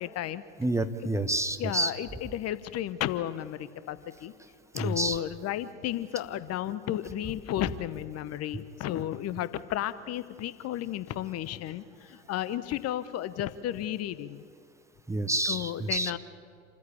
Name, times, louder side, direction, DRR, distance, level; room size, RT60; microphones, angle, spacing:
voice 1, 0.0-0.4 1.6-4.3 4.7-14.4 15.5-16.2, left 12 dB, 40° left, 15 dB, 1.0 m, -33 dB
voice 2, 0.6-1.9 4.7-5.2 15.1-16.2, right 2 dB, 10° right, 9 dB, 1.1 m, -28 dB
28.0 x 14.5 x 8.6 m, 2.3 s
figure-of-eight pair, 70°, 38 cm